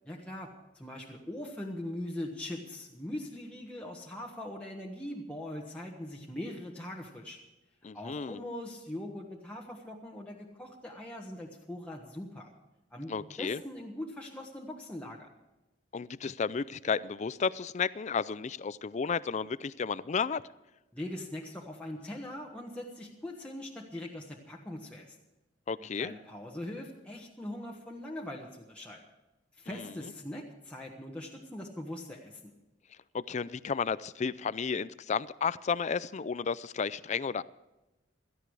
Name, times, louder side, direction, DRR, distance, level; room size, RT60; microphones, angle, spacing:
voice 1, 0.0-7.4 7.9-12.5 12.9-15.3 20.9-25.1 25.8-29.0 29.6-32.5, left 1 dB, 5° left, -3 dB, 1.3 m, -41 dB
voice 2, 7.8-8.4 13.1-13.6 15.9-20.4 25.7-26.1 29.7-29.9 33.1-37.4, left 5 dB, 40° left, 18 dB, 0.4 m, -32 dB
17.0 x 13.5 x 4.8 m, 1.0 s
head